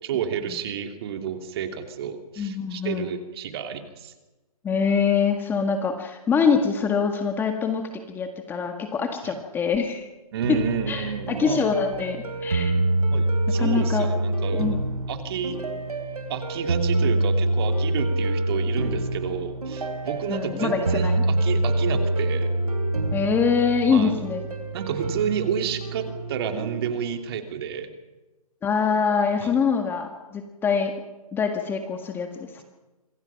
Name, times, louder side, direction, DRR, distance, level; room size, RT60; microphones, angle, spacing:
voice 1, 0.0-4.1 9.2-9.4 10.3-11.6 13.1-14.6 15.1-15.6 16.3-22.5 23.9-24.2 24.7-27.9 29.4-29.6, right 7 dB, 40° right, 6 dB, 2.8 m, -30 dB
voice 2, 2.4-3.1 4.6-7.8 8.1-10.1 10.5-10.6 10.9-12.7 13.6-14.1 14.5-14.8 20.3-21.2 23.1-24.4 28.6-30.9 31.3-32.5, left 6 dB, 10° left, 5 dB, 1.7 m, -24 dB
sound 1, 10.4-27.1, right 2 dB, 85° right, 3.8 m, -26 dB
26.5 x 23.5 x 5.9 m, 1.1 s
hypercardioid pair, 145°, 19 cm